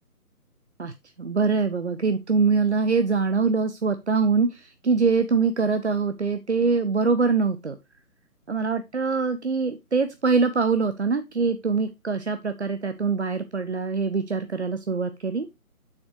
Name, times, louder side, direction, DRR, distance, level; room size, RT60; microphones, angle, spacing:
voice 1, 0.8-7.8 8.5-15.5, right 4 dB, 50° right, 10 dB, 0.6 m, -24 dB
7.2 x 6.5 x 3.0 m, 0.23 s
figure-of-eight pair, 150°, 44 cm